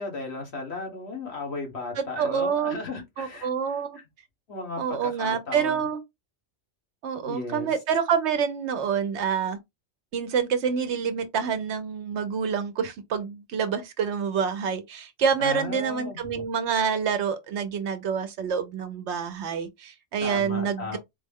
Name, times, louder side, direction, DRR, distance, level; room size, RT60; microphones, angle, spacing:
voice 1, 0.0-4.0 4.5-5.9 7.3-7.7 15.4-16.4 20.2-21.0, left 3 dB, 60° left, 1.7 m, -35 dB
voice 2, 2.0-2.8 3.2-4.0 4.8-6.0 7.0-9.6 10.1-21.0, right 6 dB, 70° right, 0.9 m, -27 dB
4.0 x 2.1 x 3.5 m
omnidirectional pair, 1.2 m